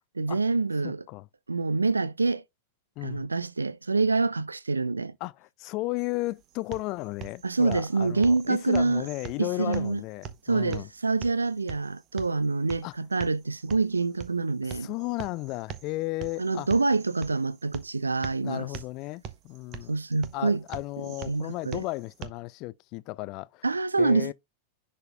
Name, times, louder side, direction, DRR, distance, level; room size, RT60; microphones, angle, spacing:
voice 1, 0.2-1.0 1.5-2.4 3.0-5.1 7.4-9.1 9.4-10.0 10.5-14.9 16.4-18.7 19.9-20.6 21.3-21.8 23.6-24.3, right 3 dB, 80° right, 0.4 m, -26 dB
voice 2, 0.8-1.3 3.0-3.3 5.2-10.9 12.8-12.9 14.7-16.7 18.4-19.9 20.3-23.6 24.0-24.3, left 21 dB, 40° left, 0.3 m, -34 dB
sound 1, 6.3-22.3, right 9 dB, 35° right, 0.8 m, -44 dB
10.5 x 4.1 x 2.2 m
figure-of-eight pair, 90°, 0 cm